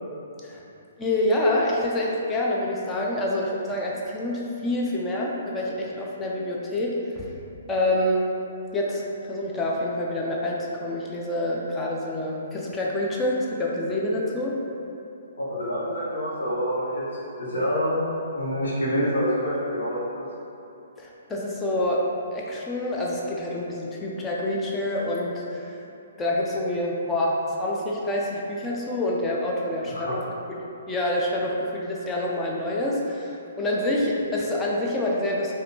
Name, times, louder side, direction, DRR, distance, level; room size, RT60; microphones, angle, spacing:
voice 1, 1.0-7.3 7.7-8.3 8.7-14.6 21.0-25.8 26.2-30.3 30.9-35.5, left 1 dB, 15° left, -3 dB, 0.5 m, -27 dB
voice 2, 15.4-17.0 17.4-18.0 18.3-20.2 29.9-30.2, equal, 60° left, -7 dB, 1.2 m, -26 dB
4.9 x 2.3 x 2.8 m, 3.0 s
figure-of-eight pair, 125°, 0 cm